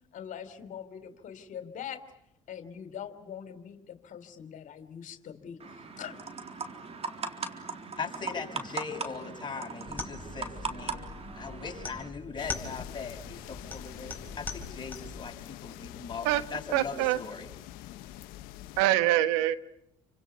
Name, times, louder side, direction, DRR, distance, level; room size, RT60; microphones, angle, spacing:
voice 1, 0.1-2.0 2.5-6.2 6.6-6.7, left 8 dB, 60° left, 10 dB, 3.4 m, -43 dB
sound 1, 5.6-12.1, right 4 dB, 40° right, 3.9 m, -39 dB
voice 2, 8.0-11.0 11.3-17.5, left 5 dB, 30° left, 2 dB, 6.2 m, -40 dB
sound 2, 9.9-15.3, left 3 dB, 10° left, 5.3 m, -42 dB
sound 3, 12.4-18.8, left 14 dB, 75° left, 1.1 m, -45 dB
voice 3, 16.7-17.2 18.8-19.6, right 14 dB, 80° right, 12 dB, 1.4 m, -24 dB
29.5 x 25.5 x 7.0 m, 0.80 s
hypercardioid pair, 65°, 15 cm